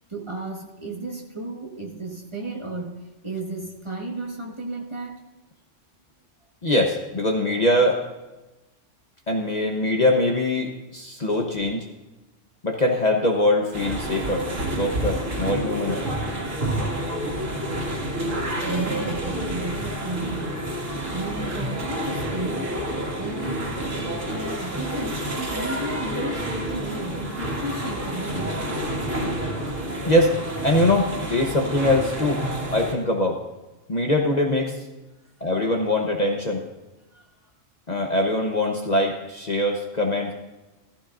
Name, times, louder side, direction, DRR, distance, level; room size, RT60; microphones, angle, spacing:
voice 1, 0.1-5.2 18.6-20.7 21.1-22.8 23.2-23.8 24.3-28.8 37.1-37.5, right 2 dB, 25° right, 0 dB, 1.5 m, -33 dB
voice 2, 6.6-8.0 9.3-11.9 12.6-14.5 14.8-16.0 29.2-29.3 30.1-30.3 30.6-32.4 32.7-33.4 33.9-34.8 35.4-36.6 37.9-40.3, left 1 dB, 35° left, 2 dB, 1.1 m, -22 dB
sound 1, 13.7-32.9, right 1 dB, 85° right, 2.4 m, -29 dB
14.5 x 14.5 x 2.6 m, 1.1 s
omnidirectional pair, 1.3 m